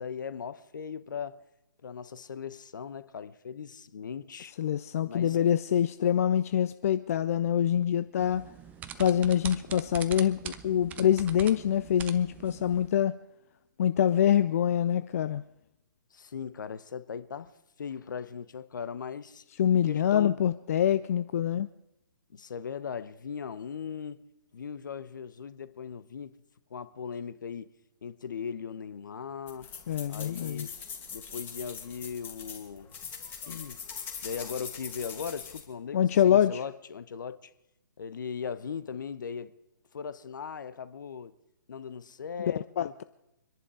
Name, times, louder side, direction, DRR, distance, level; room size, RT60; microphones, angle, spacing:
voice 1, 0.0-1.4 1.8-4.5 5.1-5.5 16.1-19.4 19.9-20.4 22.3-24.2 24.5-26.4 26.7-27.7 28.0-29.7 30.1-30.7 31.1-32.9 33.5-33.8 34.2-37.5 38.0-39.5 39.9-41.3 41.7-43.0, left 6 dB, 60° left, 1.0 m, -39 dB
voice 2, 4.6-8.4 9.0-13.1 13.8-15.4 19.6-21.7 29.9-30.7 35.9-36.6 42.4-43.0, left 10 dB, 40° left, 0.5 m, -25 dB
sound 1, 8.2-12.9, right 9 dB, 15° right, 0.6 m, -43 dB
sound 2, 29.5-35.6, left 6 dB, 15° left, 2.3 m, -42 dB
25.0 x 11.0 x 4.9 m
figure-of-eight pair, 135°, 12 cm